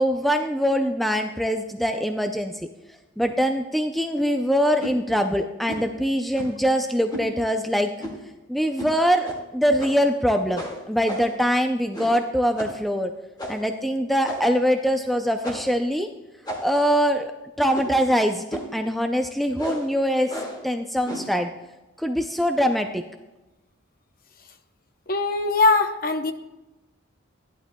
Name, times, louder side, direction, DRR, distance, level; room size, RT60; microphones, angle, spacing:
voice 1, 0.0-2.6 3.2-7.9 8.5-13.1 13.5-16.1 16.6-17.3 17.6-20.3 20.6-21.5 22.0-23.0, equal, ahead, 5 dB, 0.4 m, -23 dB
sound 1, 4.8-5.0 5.7-5.9 6.3-6.6 7.1-7.3 8.0-8.3 8.8-8.9 9.2-9.4 9.8-10.1 10.5-11.4 11.9-12.3 12.6-12.8 13.4-13.7 14.2-14.6 15.4-15.8 16.4-16.9 17.7-18.0 18.5-18.8 19.6-19.9 20.3-20.6 21.0-21.4, equal, 20° left, 1.9 m, -34 dB
voice 2, 25.1-26.3, left 3 dB, 45° left, 8 dB, 0.8 m, -21 dB
15.0 x 11.0 x 2.2 m, 1.1 s
head